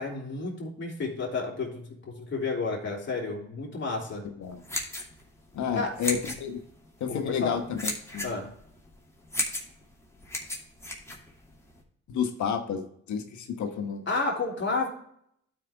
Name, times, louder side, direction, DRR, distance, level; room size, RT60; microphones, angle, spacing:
voice 1, 0.0-1.8 2.2-4.2 5.7-5.9 7.1-7.6 8.2-8.5 14.1-14.9, left 3 dB, 40° left, -3 dB, 3.0 m, -31 dB
sound 1, 4.4-11.8, left 1 dB, 10° left, 2.6 m, -36 dB
voice 2, 5.5-6.6 7.0-8.3 12.1-14.1, left 7 dB, 70° left, 5 dB, 1.3 m, -31 dB
12.0 x 5.0 x 3.5 m, 0.68 s
cardioid pair, 90°, 30 cm